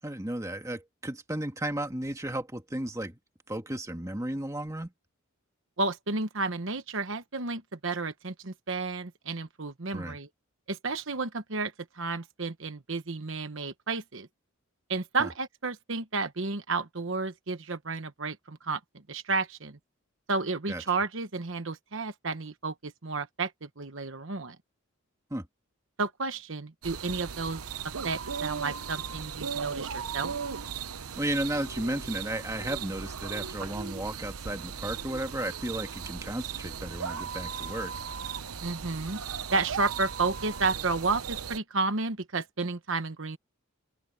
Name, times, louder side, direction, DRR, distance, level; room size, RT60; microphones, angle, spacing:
voice 1, 0.0-3.2 3.5-4.9 9.9-10.2 15.2-15.3 20.7-20.8 25.3-25.4 31.1-37.9, right 1 dB, 15° right, 1.6 m, -34 dB
voice 2, 5.8-10.3 10.7-14.3 14.9-18.8 19.1-19.8 20.3-24.6 26.0-27.6 28.0-30.4 38.6-39.2 39.5-43.4, right 3 dB, 60° right, 1.1 m, -32 dB
sound 1, 26.8-41.6, right 6 dB, 90° right, 0.9 m, -37 dB
open air
head